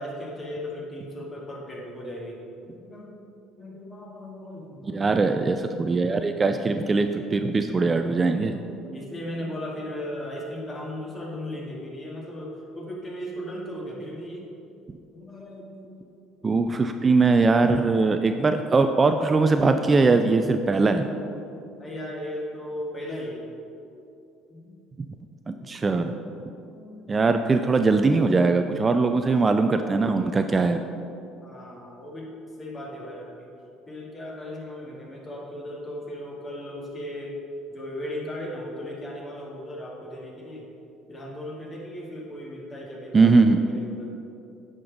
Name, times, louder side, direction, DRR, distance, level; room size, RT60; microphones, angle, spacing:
voice 1, 0.0-2.4 2.7-3.1 3.6-5.2 8.2-14.5 15.1-16.6 21.3-23.5 24.5-24.7 25.5-25.7 26.5-27.1 31.4-32.3 32.6-33.5 33.9-37.4 37.7-40.7 41.1-44.1, left 1 dB, 30° left, -2 dB, 1.9 m, -37 dB
voice 2, 4.9-8.6 16.4-21.1 25.5-26.1 27.1-30.8 43.1-43.6, right 3 dB, 25° right, 7 dB, 0.3 m, -21 dB
9.5 x 5.2 x 3.9 m, 2.6 s
supercardioid pair, 90°, 0 cm